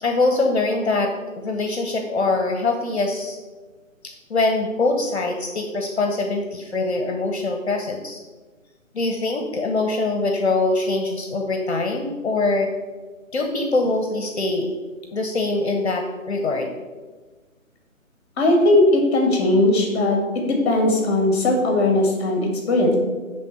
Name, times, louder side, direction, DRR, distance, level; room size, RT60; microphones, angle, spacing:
voice 1, 0.0-3.4 4.3-8.2 8.9-12.7 13.3-14.7 15.1-16.7, left 2 dB, 50° left, 3 dB, 0.9 m, -23 dB
voice 2, 18.4-20.2 20.5-22.9, left 2 dB, 20° left, 1 dB, 1.4 m, -18 dB
8.1 x 3.5 x 5.8 m, 1.3 s
figure-of-eight pair, 145°, 41 cm